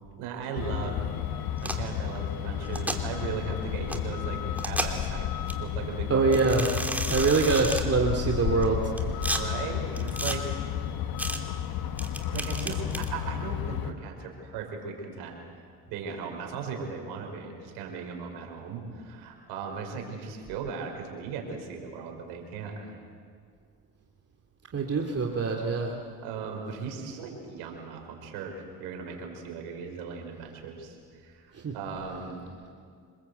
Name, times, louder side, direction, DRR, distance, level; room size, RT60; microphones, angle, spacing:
voice 1, 0.2-1.0 1.6-5.3 5.6-6.4 9.4-10.4 12.3-15.4 15.9-23.0 26.2-32.5, right 5 dB, 90° right, 2 dB, 5.0 m, -37 dB
Truck, 0.6-13.9, left 10 dB, 70° left, 1.5 m, -32 dB
sound 1, 1.6-1.9 2.6-3.0 3.9-4.0 4.6-5.1 5.5-5.6 6.3-7.8 8.6-9.4 10.0-10.4 11.2-11.4 12.0-13.1, right 1 dB, 5° right, 3.0 m, -32 dB
voice 2, 6.1-6.6 7.1-8.8 24.7-26.0 31.6-31.7, right 4 dB, 40° right, 1 dB, 2.8 m, -24 dB
26.5 x 21.5 x 8.2 m, 2.1 s
supercardioid pair, 75°, 37 cm